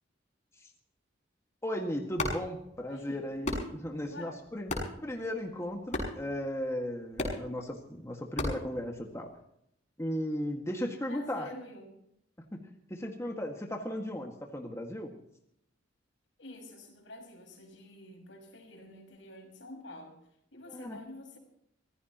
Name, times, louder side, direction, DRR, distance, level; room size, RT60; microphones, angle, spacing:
voice 1, 1.6-9.3 10.0-11.5 12.5-15.1 20.7-21.0, equal, 15° left, 2 dB, 1.9 m, -36 dB
sound 1, 2.1-9.4, left 2 dB, 40° left, 6.4 m, -39 dB
voice 2, 2.9-3.2 4.1-4.3 11.1-11.9 16.4-20.2 20.5-21.4, left 1 dB, 75° left, 3 dB, 5.7 m, -48 dB
25.0 x 16.5 x 3.0 m, 0.76 s
head